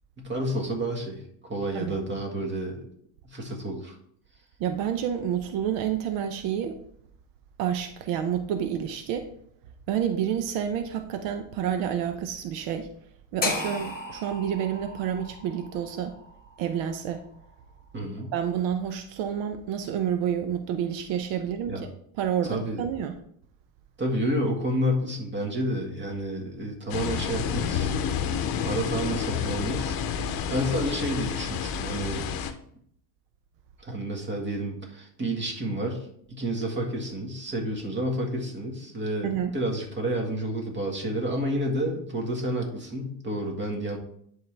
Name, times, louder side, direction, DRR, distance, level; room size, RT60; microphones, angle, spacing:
voice 1, 0.2-2.8 3.2-4.0 17.9-18.3 21.7-21.8 22.4-22.9 24.0-27.9 28.6-30.0 30.5-32.3 33.8-44.0, right 1 dB, 25° right, 1 dB, 1.7 m, -30 dB
voice 2, 4.6-6.8 7.6-9.3 9.9-12.9 13.3-16.1 16.6-17.2 18.3-21.9 22.2-23.2 39.2-39.5, right 9 dB, 80° right, 7 dB, 0.7 m, -29 dB
sound 1, 13.4-17.5, left 2 dB, 20° left, 1.6 m, -35 dB
sound 2, 26.9-32.5, left 7 dB, 55° left, 0.8 m, -29 dB
10.5 x 3.8 x 3.3 m, 0.66 s
cardioid pair, 110°, 43 cm